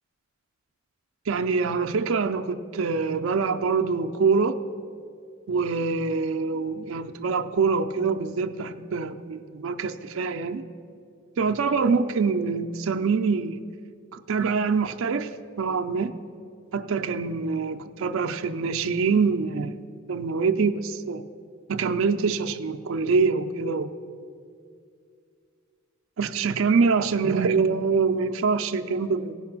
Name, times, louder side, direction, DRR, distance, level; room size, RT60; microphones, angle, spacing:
voice 1, 1.3-4.6 5.5-10.6 11.4-13.6 14.1-16.1 16.7-19.7 20.1-21.2 21.7-23.9 26.2-29.3, right 5 dB, 70° right, 6 dB, 0.4 m, -25 dB
16.0 x 5.7 x 5.9 m, 2.3 s
head